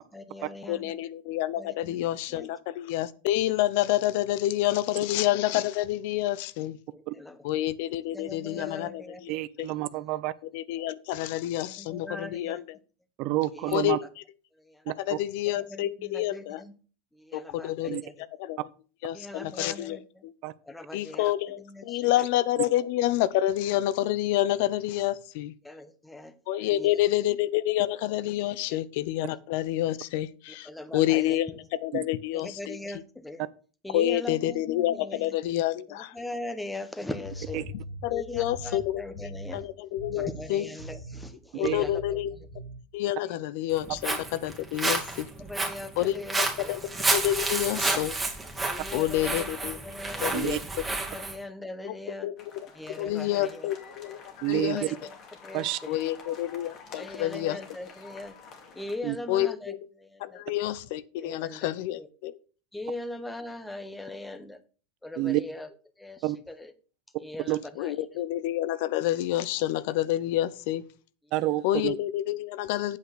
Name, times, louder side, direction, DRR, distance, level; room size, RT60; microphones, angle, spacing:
voice 1, 0.0-0.9 1.6-2.0 2.3-2.5 6.9-7.4 8.1-9.2 11.8-12.6 13.5-13.8 14.6-14.8 15.6-16.7 17.1-18.1 19.1-20.2 20.6-22.2 25.6-26.3 26.7-26.9 28.7-28.8 30.7-31.6 32.4-33.5 33.8-34.6 34.9-35.3 36.1-37.6 38.1-39.7 40.1-42.2 43.2-43.4 45.4-46.7 47.9-48.0 48.7-50.4 51.0-52.3 52.8-53.7 54.5-55.2 55.4-56.1 56.9-58.3 58.7-60.4 61.2-62.1 62.7-64.6 65.0-65.7 66.0-66.7 67.2-67.9 71.7-71.8, left 2 dB, 5° left, 1.2 m, -40 dB
voice 2, 0.7-6.8 7.4-9.3 9.6-9.7 10.5-12.8 13.7-14.0 15.0-16.6 17.3-18.6 19.0-20.3 20.9-25.5 26.5-32.8 33.9-36.1 38.0-39.0 39.5-40.6 41.6-42.3 42.9-45.3 46.0-48.2 48.9-49.8 50.2-50.6 51.8-52.7 53.0-54.8 55.9-57.6 59.3-59.8 60.2-62.3 67.8-70.8 71.6-73.0, left 14 dB, 65° left, 0.5 m, -28 dB
voice 3, 9.3-10.3 13.2-14.0 14.9-15.0 17.9-18.0 20.4-20.5 31.9-32.0 37.5-37.6 41.6-41.8 50.3-50.6 54.4-54.9 55.5-55.8 59.0-59.2 65.2-65.4 66.2-66.4 67.5-67.6 71.3-71.9, right 17 dB, 55° right, 0.5 m, -28 dB
Laba Daba Dub (Bass), 37.2-39.6 40.0-40.5 40.8-41.3 41.6-42.8, equal, 85° left, 2.3 m, -41 dB
Walk footsteps, 43.7-51.4, right 2 dB, 10° right, 2.2 m, -30 dB
sound 1, 52.4-59.0, left 5 dB, 45° left, 2.3 m, -49 dB
8.4 x 5.0 x 6.1 m
hypercardioid pair, 100°, 0 cm